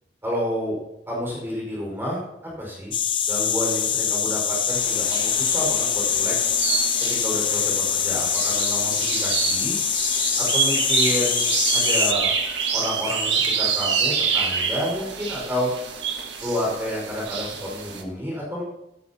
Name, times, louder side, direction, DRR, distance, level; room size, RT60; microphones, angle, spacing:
voice 1, 0.2-0.8 1.1-2.9 3.3-6.5 7.0-9.8 10.4-12.3 12.7-15.7 16.4-18.6, equal, 15° right, -4 dB, 5.2 m, -29 dB
sound 1, 2.9-12.1, left 8 dB, 30° left, 0.6 m, -24 dB
sound 2, 4.7-18.0, right 6 dB, 80° right, 1.7 m, -27 dB
15.5 x 12.5 x 2.9 m, 0.86 s
head